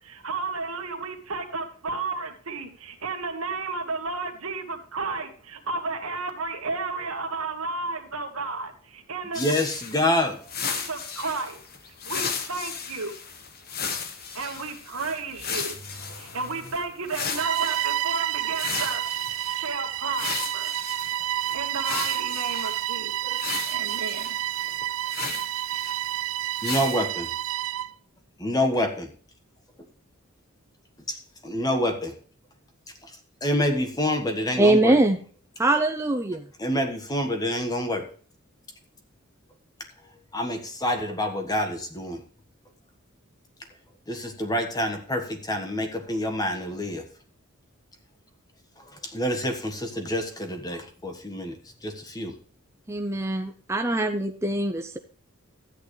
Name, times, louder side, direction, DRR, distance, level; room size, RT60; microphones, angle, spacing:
voice 1, 0.0-9.5 10.7-11.6 12.0-13.2 14.3-15.8 16.1-19.0 19.5-20.3 20.5-20.8 21.5-23.4 23.7-24.4, right 3 dB, 85° right, 1.7 m, -32 dB
sound 1, 9.3-18.0 18.5-19.7 20.1-22.8 23.3-26.2 26.6-27.0, left 6 dB, 45° left, 1.2 m, -35 dB
voice 2, 9.3-10.5 26.6-27.3 28.4-29.1 29.8-29.9 31.1-31.2 31.4-32.1 33.0-35.0 36.6-38.0 40.3-42.2 44.1-47.0 48.8-52.3, left 1 dB, 20° left, 1.4 m, -27 dB
Car / Accelerating revving vroom, 15.2-17.4, equal, 70° left, 2.2 m, -47 dB
Bowed string instrument, 17.3-27.9, right 13 dB, 70° right, 0.4 m, -29 dB
voice 3, 34.6-35.2 35.6-36.5 52.9-55.0, right 2 dB, 15° right, 0.6 m, -23 dB
13.0 x 8.9 x 3.2 m
head